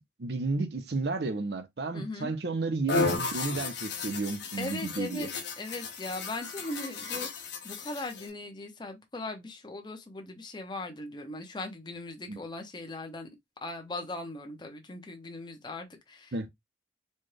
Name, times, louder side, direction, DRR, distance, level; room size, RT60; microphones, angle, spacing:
voice 1, 0.2-5.3 12.3-12.4 16.3-16.5, right 3 dB, 65° right, 0.7 m, -32 dB
voice 2, 1.9-2.3 4.6-5.3 5.6-13.3 13.6-16.5, left 2 dB, 25° left, 0.7 m, -39 dB
sound 1, 2.9-8.3, left 3 dB, 70° left, 1.1 m, -34 dB
4.2 x 2.2 x 3.2 m
head